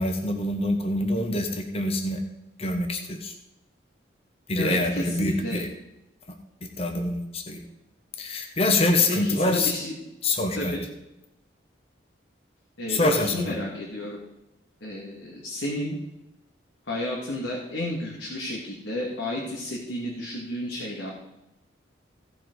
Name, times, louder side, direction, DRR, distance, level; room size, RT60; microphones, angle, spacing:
voice 1, 0.0-2.2 2.6-3.3 4.5-5.7 6.6-7.6 8.2-9.7 10.2-10.7 12.9-13.6, left 2 dB, 30° left, 4 dB, 1.1 m, -25 dB
voice 2, 4.5-5.6 9.1-9.9 10.5-10.8 12.8-14.2 14.8-16.0 16.9-21.1, left 1 dB, 85° left, -3 dB, 2.2 m, -32 dB
16.5 x 5.9 x 4.7 m, 0.90 s
head